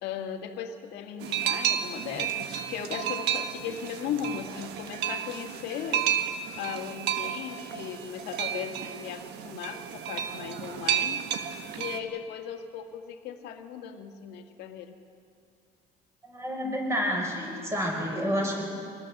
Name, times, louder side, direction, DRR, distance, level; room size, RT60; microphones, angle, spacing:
voice 1, 0.0-6.1 6.6-11.2 11.7-15.0, left 8 dB, 85° left, 5 dB, 1.6 m, -37 dB
sound 1, 1.2-12.0, right 9 dB, 85° right, 1.3 m, -32 dB
voice 2, 16.2-18.7, equal, 15° right, 0 dB, 5.5 m, -29 dB
25.0 x 19.5 x 6.6 m, 2.4 s
cardioid pair, 110°, 17 cm